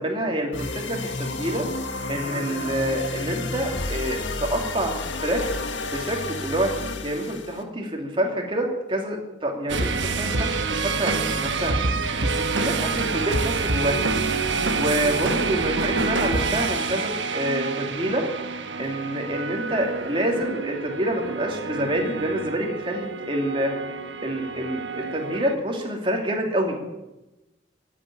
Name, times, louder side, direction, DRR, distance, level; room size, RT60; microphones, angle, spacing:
voice 1, 0.0-1.6 2.1-5.5 5.9-11.8 12.2-14.0 14.5-18.3 18.8-23.7 24.2-26.9, right 1 dB, 25° right, 1 dB, 2.9 m, -27 dB
sound 1, 0.5-7.6, left 3 dB, 80° left, 1.6 m, -31 dB
sound 2, 9.7-25.6, right 4 dB, 80° right, 1.3 m, -27 dB
13.5 x 9.2 x 10.0 m, 1.0 s
head